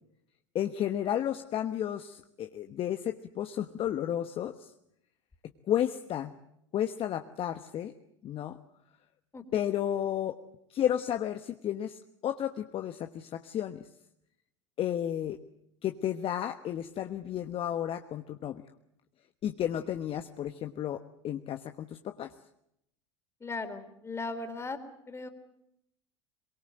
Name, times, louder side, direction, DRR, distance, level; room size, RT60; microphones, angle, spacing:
voice 1, 0.5-4.7 5.7-6.3 6.7-7.9 8.2-8.6 9.5-10.4 10.7-13.8 14.8-15.4 15.8-18.6 19.4-22.3, left 10 dB, 40° left, 7 dB, 1.2 m, -32 dB
voice 2, 23.4-24.8 25.1-25.3, left 3 dB, 20° left, 6 dB, 3.7 m, -37 dB
23.0 x 23.0 x 7.9 m, 0.78 s
hypercardioid pair, 80°, 14 cm